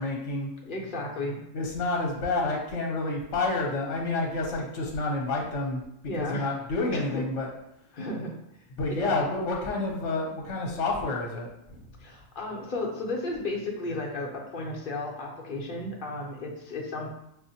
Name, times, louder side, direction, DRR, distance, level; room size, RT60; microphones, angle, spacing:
voice 1, 0.0-0.5 1.5-5.8 6.2-7.5 8.8-11.8, left 2 dB, 75° left, -1 dB, 1.1 m, -29 dB
voice 2, 0.6-1.4 6.1-6.5 6.9-7.2 7.9-8.4 8.9-9.2 12.0-17.1, left 2 dB, 50° left, -1 dB, 0.8 m, -34 dB
6.1 x 2.1 x 2.7 m, 0.81 s
omnidirectional pair, 1.3 m